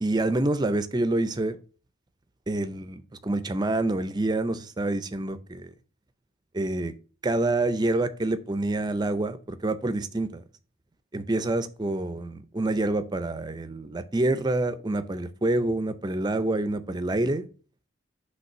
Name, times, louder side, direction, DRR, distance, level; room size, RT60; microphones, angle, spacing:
voice 1, 0.0-1.6 2.5-5.7 6.5-6.9 7.2-10.4 11.1-17.5, right 2 dB, 20° right, 0.5 m, -27 dB
5.6 x 3.3 x 5.4 m
head